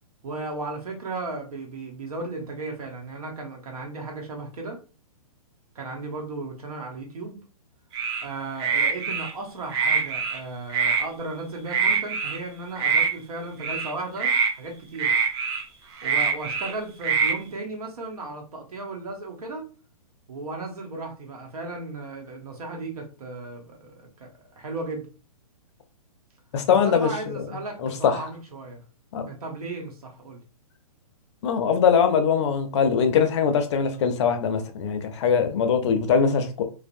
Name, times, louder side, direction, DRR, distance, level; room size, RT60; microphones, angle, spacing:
voice 1, 0.2-4.8 5.7-7.4 8.2-15.1 16.0-19.7 20.3-25.1 26.7-28.8 29.3-30.4, right 2 dB, 75° right, 1.0 m, -35 dB
sound 1, 7.9-8.2 8.6-9.3 9.7-10.4 10.7-11.0 11.7-12.4 12.8-13.1 13.6-13.9 14.2-14.5 15.0-15.6 16.0-16.7 17.0-17.3, right 6 dB, 45° right, 0.5 m, -24 dB
voice 2, 26.5-27.1 27.8-28.3 29.1-29.3 31.4-36.6, left 6 dB, 50° left, 0.5 m, -22 dB
2.6 x 2.0 x 2.5 m
hypercardioid pair, 140°, 19 cm